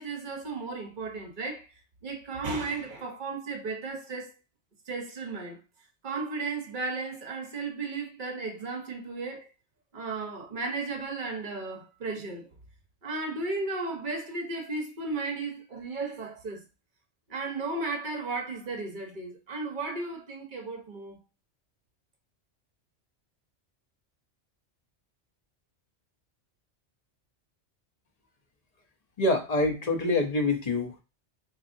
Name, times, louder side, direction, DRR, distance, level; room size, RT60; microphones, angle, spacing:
voice 1, 0.0-4.3 4.9-5.6 6.0-9.5 9.9-12.5 13.0-16.6 17.3-21.2, right 3 dB, 50° right, 0.9 m, -35 dB
voice 2, 29.2-31.0, left 2 dB, 40° left, 0.8 m, -26 dB
3.9 x 2.8 x 2.6 m
omnidirectional pair, 1.2 m